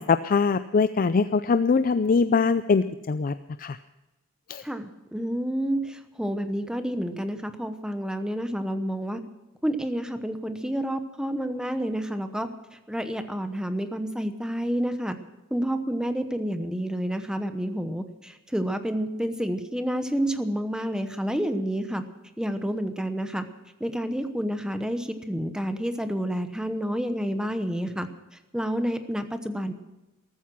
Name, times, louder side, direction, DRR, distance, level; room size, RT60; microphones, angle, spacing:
voice 1, 0.0-3.8 4.5-4.6, left 4 dB, 40° left, 12 dB, 0.4 m, -23 dB
voice 2, 4.6-9.2 9.6-12.5 12.9-15.2 15.5-22.0 22.4-23.4 23.8-28.1 28.5-29.7, equal, 5° right, 8 dB, 0.9 m, -29 dB
14.5 x 13.5 x 6.2 m, 1.1 s
head